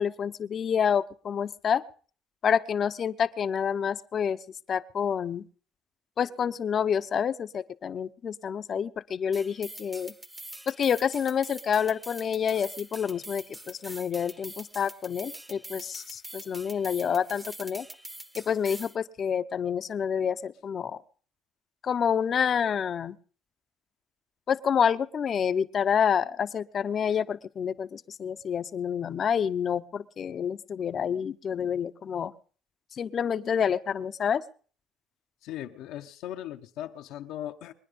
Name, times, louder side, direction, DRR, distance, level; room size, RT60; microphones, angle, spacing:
voice 1, 0.0-1.8 2.4-4.4 4.7-5.4 6.2-10.1 10.7-17.9 18.4-21.0 21.8-23.2 24.5-32.3 33.0-34.4, left 7 dB, 45° left, 0.8 m, -28 dB
sound 1, 9.3-19.0, right 1 dB, 10° right, 1.1 m, -44 dB
voice 2, 35.4-37.7, left 12 dB, 75° left, 1.1 m, -38 dB
22.5 x 9.9 x 5.3 m
supercardioid pair, 85°, 0 cm